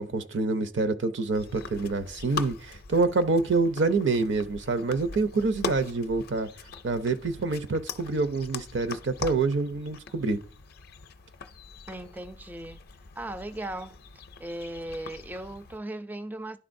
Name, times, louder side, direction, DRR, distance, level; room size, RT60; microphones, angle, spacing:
voice 1, 0.0-6.5 6.8-10.4, right 3 dB, 70° right, 0.6 m, -26 dB
sound 1, 1.3-15.8, left 5 dB, 50° left, 0.5 m, -41 dB
voice 2, 11.9-12.8 13.2-14.0 14.4-16.6, right 1 dB, 10° right, 0.3 m, -37 dB
11.0 x 3.8 x 2.6 m
head